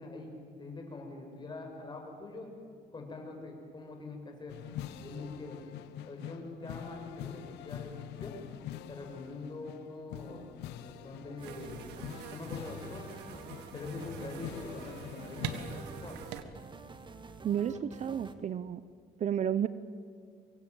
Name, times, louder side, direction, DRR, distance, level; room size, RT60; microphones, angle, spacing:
voice 1, 0.0-2.5 2.9-4.6 5.0-5.7 6.1-8.4 8.9-10.5 10.8-12.0 12.3-13.0 13.7-16.2, left 3 dB, 25° left, 2 dB, 6.2 m, -44 dB
sound 1, 4.5-15.8, left 11 dB, 90° left, 1.2 m, -45 dB
sound 2, 11.4-18.3, right 4 dB, 30° right, 1.7 m, -49 dB
sound 3, 11.4-16.4, right 8 dB, 85° right, 1.7 m, -44 dB
voice 2, 17.4-18.8 19.2-19.7, right 9 dB, 45° right, 15 dB, 0.8 m, -31 dB
25.0 x 23.0 x 7.9 m, 2.1 s
cardioid pair, 110°, 17 cm